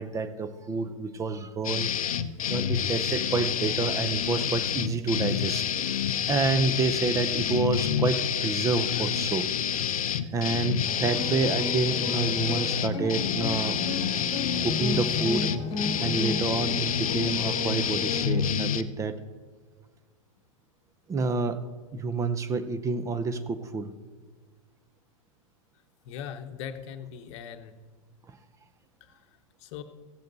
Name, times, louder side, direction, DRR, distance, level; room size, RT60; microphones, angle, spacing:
voice 1, 0.0-1.9 2.5-9.5 10.3-14.2 14.6-15.5 16.0-19.2 21.1-21.6 21.9-23.9 28.3-28.4, right 4 dB, 15° right, 12 dB, 0.6 m, -29 dB
sound 1, 1.6-18.8, left 9 dB, 90° left, 0.5 m, -28 dB
sound 2, 10.9-18.2, left 4 dB, 25° left, 1.6 m, -33 dB
voice 2, 26.1-27.7 29.6-29.8, left 8 dB, 55° left, 8 dB, 0.9 m, -40 dB
15.5 x 7.5 x 4.0 m, 1.5 s
hypercardioid pair, 115°, 18 cm